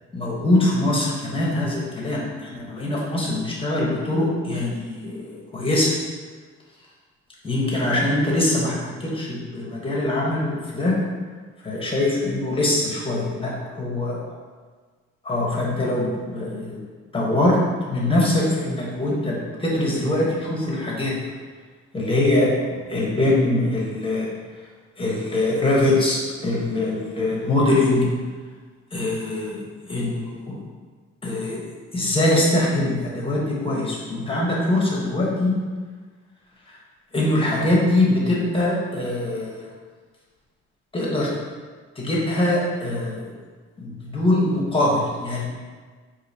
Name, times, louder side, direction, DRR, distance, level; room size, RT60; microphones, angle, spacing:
voice 1, 0.1-5.9 7.4-11.0 11.6-14.2 15.2-16.8 17.1-17.6 17.9-21.1 21.9-22.5 22.9-24.3 25.0-28.0 28.9-30.5 31.2-31.6 31.9-35.5 36.7-36.8 37.1-39.7 40.9-41.3 42.0-43.2 43.8-45.4, left 1 dB, 20° left, -4 dB, 1.0 m, -23 dB
4.7 x 2.7 x 2.7 m, 1.5 s
cardioid pair, 90°, 30 cm